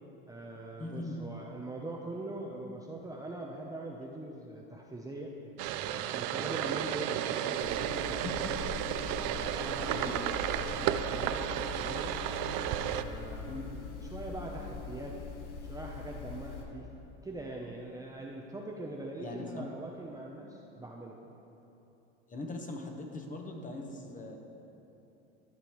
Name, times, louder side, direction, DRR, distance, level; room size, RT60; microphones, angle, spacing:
voice 1, 0.3-5.3 5.8-8.7 9.3-12.1 12.8-13.6 13.9-15.2 15.6-16.9 17.2-21.2, right 2 dB, 10° right, -2 dB, 0.7 m, -42 dB
voice 2, 0.8-1.2 6.3-6.6 8.2-8.5 9.9-10.1 13.5-13.7 19.2-19.7 22.3-24.4, left 2 dB, 25° left, 3 dB, 1.1 m, -41 dB
sound 1, 5.6-13.0, right 11 dB, 60° right, 0.5 m, -33 dB
sound 2, 7.5-16.6, left 5 dB, 80° left, 1.1 m, -42 dB
13.5 x 7.0 x 3.1 m, 2.9 s
supercardioid pair, 95°, 33 cm